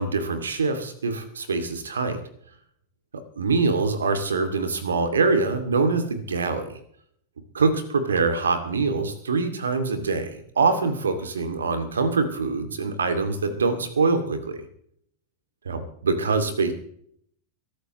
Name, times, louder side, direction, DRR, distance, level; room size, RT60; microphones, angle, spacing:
voice 1, 0.0-2.2 3.4-6.8 7.5-14.6 15.6-16.7, right 4 dB, 70° right, 8 dB, 2.4 m, -24 dB
22.5 x 12.5 x 3.1 m, 0.64 s
figure-of-eight pair, 90°, 0 cm